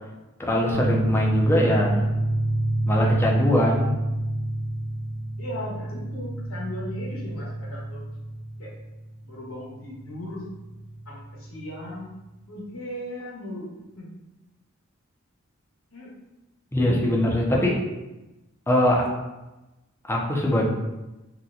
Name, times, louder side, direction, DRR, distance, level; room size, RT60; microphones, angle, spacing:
voice 1, 0.4-2.1 2.9-3.9 16.7-17.8 18.7-19.1 20.1-20.6, left 1 dB, 10° left, -2 dB, 0.5 m, -22 dB
sound 1, 0.7-11.9, right 1 dB, 70° right, 0.6 m, -28 dB
voice 2, 5.4-8.0 8.6-8.7 9.2-10.5 11.1-11.2 11.5-12.1 12.5-13.7 13.9-14.1 15.9-16.1 17.1-17.4, left 1 dB, 75° left, -6 dB, 1.1 m, -37 dB
2.8 x 2.2 x 3.7 m, 1.0 s
head